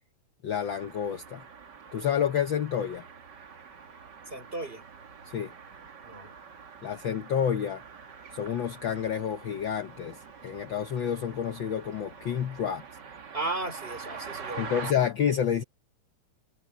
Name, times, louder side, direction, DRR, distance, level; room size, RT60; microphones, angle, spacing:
voice 1, 0.4-1.4 1.9-3.1 5.3-5.5 6.8-7.8 8.3-12.8 14.6-15.6, left 8 dB, 70° left, 1.1 m, -29 dB
sound 1, 0.6-14.9, right 6 dB, 40° right, 1.8 m, -45 dB
voice 2, 4.3-4.8 6.0-6.3 13.3-14.8, right 2 dB, 15° right, 4.7 m, -35 dB
omnidirectional pair, 3.5 m